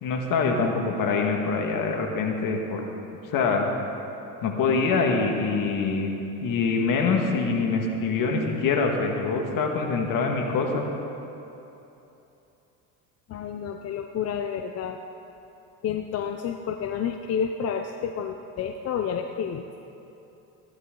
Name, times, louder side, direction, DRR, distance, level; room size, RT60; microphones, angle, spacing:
voice 1, 0.0-2.8 3.3-3.7 4.4-6.1 6.4-10.9, left 4 dB, 55° left, 2 dB, 1.8 m, -24 dB
voice 2, 13.3-15.0 15.8-19.7, left 7 dB, 40° left, 6 dB, 0.6 m, -30 dB
15.0 x 11.0 x 3.8 m, 3.0 s
supercardioid pair, 100°, 39 cm